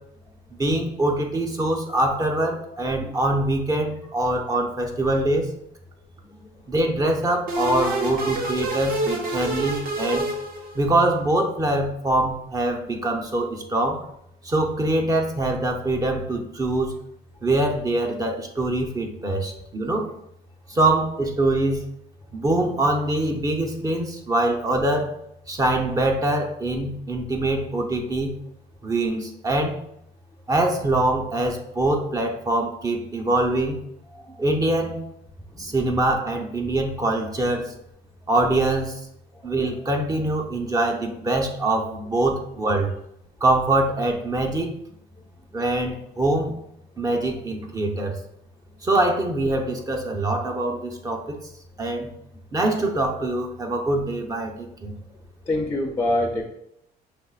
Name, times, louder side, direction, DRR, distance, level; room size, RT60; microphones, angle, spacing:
voice 1, 0.5-5.5 6.7-10.3 10.7-14.0 14.4-16.9 17.4-20.1 20.7-21.9 22.3-25.1 25.5-28.4 28.8-29.8 30.5-33.8 34.4-35.0 35.6-37.7 38.3-39.0 39.4-42.9 43.4-44.7 45.5-46.5 47.0-48.2 48.8-51.4 51.8-52.1 52.5-54.9, right 2 dB, 20° right, 2 dB, 0.7 m, -24 dB
sound 1, 7.5-11.1, right 2 dB, 60° right, 0.9 m, -27 dB
voice 2, 34.1-34.4 35.5-35.6 55.5-56.4, left 1 dB, 15° left, 1 dB, 0.5 m, -26 dB
6.0 x 3.1 x 2.4 m, 0.76 s
cardioid pair, 110°, 17 cm